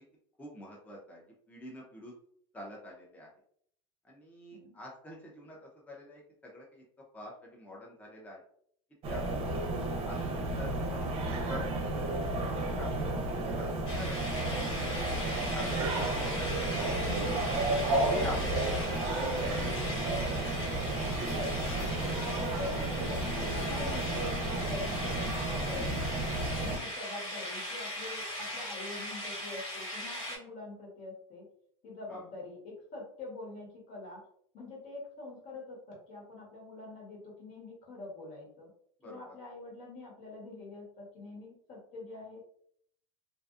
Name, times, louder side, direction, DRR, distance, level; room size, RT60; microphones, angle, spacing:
voice 1, 0.4-1.2 1.5-2.1 2.5-3.3 4.0-6.8 7.1-8.4 9.1-9.3 9.9-11.9 12.7-17.0 18.1-18.8 19.3-20.1 32.1-32.2 39.0-39.4, equal, 10° left, -3 dB, 0.5 m, -46 dB
sound 1, 9.0-26.8, right 2 dB, 35° right, 0.6 m, -32 dB
sound 2, 13.9-30.4, left 1 dB, 75° left, 1.4 m, -39 dB
voice 2, 21.3-21.9 22.4-25.9 26.6-31.4 31.8-34.2 34.5-38.7 39.0-42.4, left 2 dB, 55° left, -2 dB, 1.3 m, -44 dB
2.5 x 2.2 x 2.4 m, 0.65 s
supercardioid pair, 120°, 17 cm